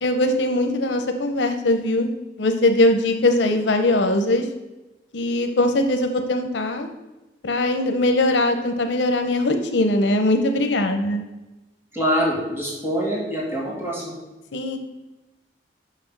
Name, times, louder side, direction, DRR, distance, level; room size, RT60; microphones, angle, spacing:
voice 1, 0.0-2.1 2.4-4.5 5.1-6.9 7.4-11.3 14.5-14.8, left 1 dB, 90° left, 7 dB, 0.7 m, -21 dB
voice 2, 11.9-14.1, equal, 15° right, -5 dB, 1.9 m, -24 dB
6.0 x 5.6 x 5.9 m, 1.1 s
head